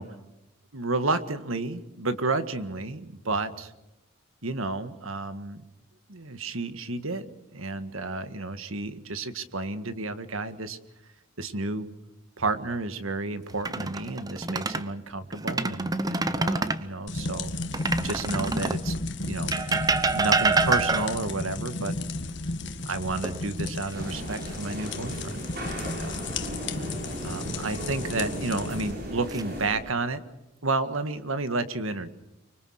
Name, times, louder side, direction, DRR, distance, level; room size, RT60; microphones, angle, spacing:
voice 1, 0.7-3.7 4.4-5.6 6.1-7.3 7.5-10.8 11.4-11.9 12.4-17.5 18.0-18.9 19.2-19.5 20.0-22.0 22.9-25.4 25.6-26.2 27.2-30.2 30.6-32.1, right 3 dB, 75° right, 11 dB, 1.8 m, -31 dB
sound 1, 13.5-14.9 15.3-16.9 17.7-18.9 19.5-21.3 23.2-23.9 24.3-24.5 27.5-28.1 28.8-29.4, right 3 dB, 20° right, 0.8 m, -27 dB
sound 2, 17.1-28.9, left 2 dB, 55° left, 1.8 m, -34 dB
sound 3, 23.9-29.8, equal, 45° right, 7.5 m, -36 dB
25.0 x 24.5 x 6.5 m, 0.91 s
head